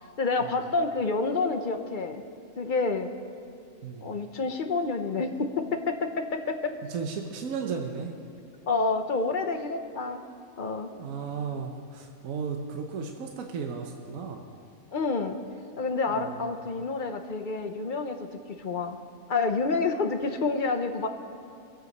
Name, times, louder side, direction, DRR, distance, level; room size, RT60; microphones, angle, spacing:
voice 1, 0.2-2.2 2.6-3.1 4.0-6.7 8.7-10.2 10.6-10.9 14.9-15.4 15.8-19.0 19.3-21.1, left 3 dB, 45° left, 6 dB, 0.7 m, -28 dB
voice 2, 6.9-8.2 10.9-14.4 16.1-16.6, right 5 dB, 70° right, 3 dB, 1.3 m, -35 dB
22.5 x 7.8 x 5.3 m, 2.4 s
omnidirectional pair, 1.5 m